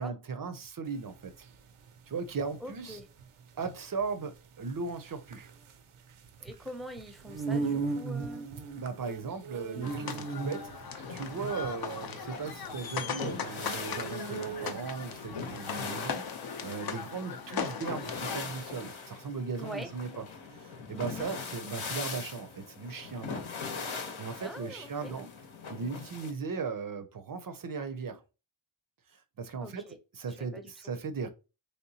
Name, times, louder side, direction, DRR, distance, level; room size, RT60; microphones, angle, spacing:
voice 1, 0.0-1.5 2.1-3.0 3.6-5.5 8.8-20.2 20.5-23.4 23.8-23.9 24.2-25.3 25.7-28.2 29.1-29.9 30.1-31.3, right 5 dB, 45° right, 0.5 m, -37 dB
sound 1, 0.9-15.1, right 4 dB, 85° right, 0.6 m, -38 dB
voice 2, 2.6-3.1 6.4-8.5 19.6-19.9 20.9-21.3 24.4-25.2 29.6-30.0 30.4-30.9, equal, ahead, 0.6 m, -44 dB
sound 2, 9.8-18.4, left 6 dB, 50° left, 0.5 m, -39 dB
sound 3, 10.8-26.3, left 5 dB, 70° left, 0.9 m, -41 dB
3.2 x 2.8 x 2.7 m
cardioid pair, 50°, 49 cm